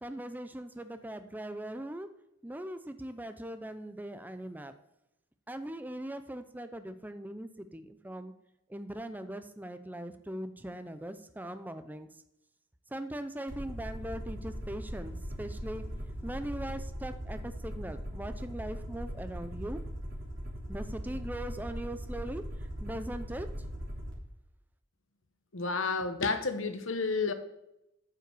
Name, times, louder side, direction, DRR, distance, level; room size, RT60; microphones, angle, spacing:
voice 1, 0.0-2.1 2.4-4.7 5.5-8.3 8.7-12.1 12.9-15.8 16.2-19.8 20.7-22.4 22.8-23.5, right 1 dB, 10° right, 10 dB, 0.5 m, -40 dB
Aircraft, 13.5-24.1, equal, 65° right, 2.7 m, -40 dB
voice 2, 25.5-27.3, left 4 dB, 70° left, 9 dB, 0.9 m, -30 dB
8.9 x 5.6 x 6.1 m, 0.85 s
head